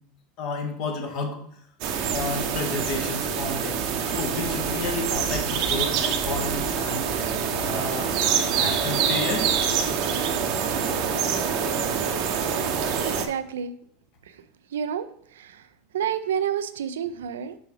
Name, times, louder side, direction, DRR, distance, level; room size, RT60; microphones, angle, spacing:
voice 1, 0.4-1.4 2.1-7.1 7.5-8.2 8.5-9.4, left 3 dB, 60° left, 1 dB, 1.8 m, -31 dB
sound 1, 1.8-13.3, right 7 dB, 60° right, 0.8 m, -25 dB
voice 2, 13.1-13.7 14.7-15.1 15.4-15.6 15.9-17.6, right 8 dB, 85° right, 12 dB, 0.5 m, -29 dB
6.1 x 5.6 x 3.4 m, 0.68 s
hypercardioid pair, 105°, 0 cm